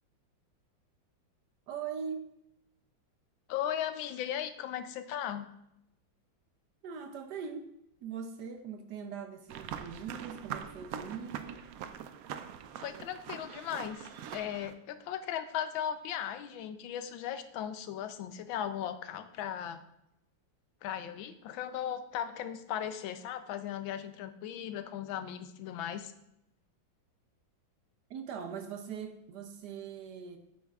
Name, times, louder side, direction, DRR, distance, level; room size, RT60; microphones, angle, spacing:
voice 1, 1.7-2.3 6.8-11.7 28.1-30.4, right 6 dB, 70° right, 7 dB, 1.1 m, -41 dB
voice 2, 3.5-5.5 12.8-19.8 20.8-26.1, left 10 dB, 85° left, 10 dB, 1.4 m, -37 dB
sound 1, 9.5-14.7, right 8 dB, 90° right, 0.7 m, -43 dB
8.6 x 7.8 x 2.4 m, 0.80 s
omnidirectional pair, 2.1 m